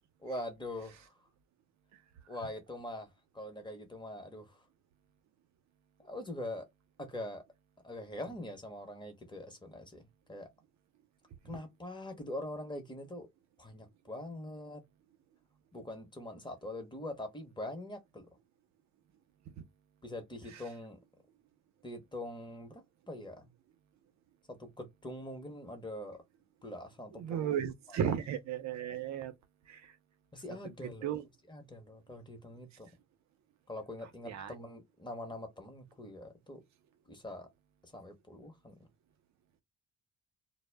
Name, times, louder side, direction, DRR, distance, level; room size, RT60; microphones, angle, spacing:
voice 1, 0.2-1.1 2.3-3.1 3.3-4.6 6.0-6.7 7.0-7.4 7.8-10.5 11.4-13.3 13.6-14.8 15.7-18.3 20.0-21.0 21.8-23.5 24.5-26.2 26.6-27.5 27.9-28.0 30.3-31.2 31.5-32.9 33.7-36.6 37.1-37.5 37.8-38.9, left 1 dB, 15° left, 0.8 m, -43 dB
voice 2, 27.2-29.3 29.7-29.9 30.6-31.2 34.2-34.5, right 9 dB, 65° right, 0.6 m, -35 dB
2.0 x 2.0 x 3.2 m
cardioid pair, 90°, 30 cm